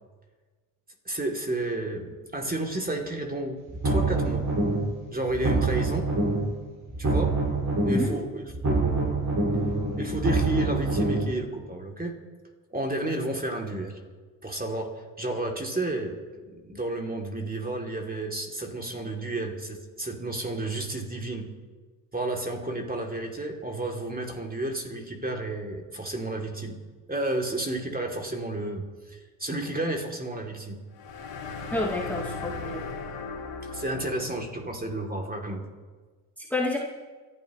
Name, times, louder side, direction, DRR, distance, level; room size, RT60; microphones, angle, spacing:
voice 1, 1.0-3.6 3.8-4.5 5.1-6.1 7.0-7.4 7.8-9.1 10.0-12.1 12.7-14.0 14.4-16.2 16.5-21.5 22.1-26.8 27.1-30.8 33.6-35.6, right 2 dB, 20° right, 1 dB, 2.9 m, -31 dB
sound 1, 3.7-5.0 5.3-6.6 6.9-8.2 8.5-11.3, right 2 dB, 40° right, 5.4 m, -26 dB
sound 2, 30.9-34.7, left 4 dB, 65° left, 2.9 m, -37 dB
voice 2, 31.7-32.8 36.4-36.8, left 2 dB, 5° left, -2 dB, 2.3 m, -29 dB
27.5 x 12.0 x 3.2 m, 1.4 s
supercardioid pair, 55°, 48 cm